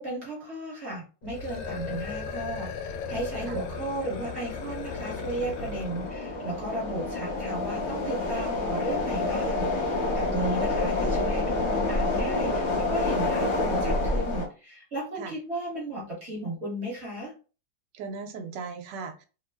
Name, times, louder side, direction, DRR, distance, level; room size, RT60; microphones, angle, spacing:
voice 1, 0.0-17.3, right 1 dB, 40° right, 1.2 m, -35 dB
sound 1, 1.2-6.2, left 5 dB, 80° left, 1.3 m, -36 dB
sound 2, 2.9-14.4, left 2 dB, 60° left, 0.5 m, -29 dB
voice 2, 10.3-10.6 15.2-15.3 17.9-19.2, right 4 dB, 75° right, 1.2 m, -38 dB
3.1 x 2.0 x 3.3 m
omnidirectional pair, 2.0 m